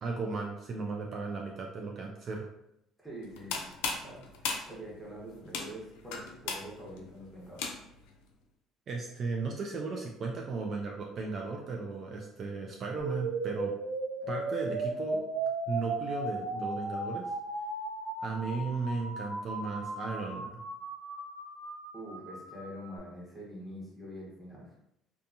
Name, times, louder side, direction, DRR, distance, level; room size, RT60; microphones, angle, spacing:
voice 1, 0.0-2.5 8.9-13.7 14.3-15.2 15.7-17.3 18.2-20.6, right 4 dB, 45° right, 0 dB, 0.4 m, -35 dB
voice 2, 3.0-7.7 14.9-15.0 21.9-24.7, equal, ahead, -6 dB, 1.1 m, -45 dB
sound 1, 3.2-8.1, left 5 dB, 85° left, 0.4 m, -38 dB
sound 2, 13.0-23.0, right 2 dB, 85° right, 1.0 m, -36 dB
2.7 x 2.3 x 2.6 m, 0.81 s
cardioid pair, 110°, 0 cm